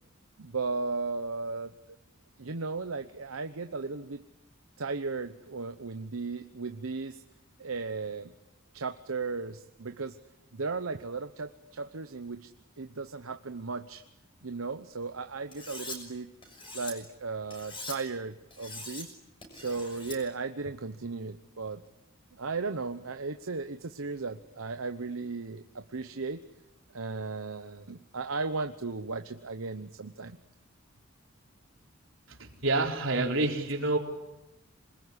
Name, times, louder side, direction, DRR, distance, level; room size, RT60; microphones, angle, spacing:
voice 1, 0.4-1.7 2.4-4.2 4.8-7.2 7.6-8.3 8.7-10.2 10.5-12.5 12.8-14.0 14.4-16.3 16.7-19.1 19.5-21.8 22.3-26.4 26.9-30.4, right 4 dB, 85° right, 8 dB, 1.0 m, -36 dB
Cutlery silverware, 15.5-16.0 16.4-16.9 17.5-18.0 18.5-19.1 19.4-20.2, left 2 dB, 25° left, 6.2 m, -42 dB
voice 2, 32.3-34.0, right 2 dB, 70° right, 2 dB, 4.2 m, -28 dB
27.0 x 20.5 x 9.9 m, 0.95 s
head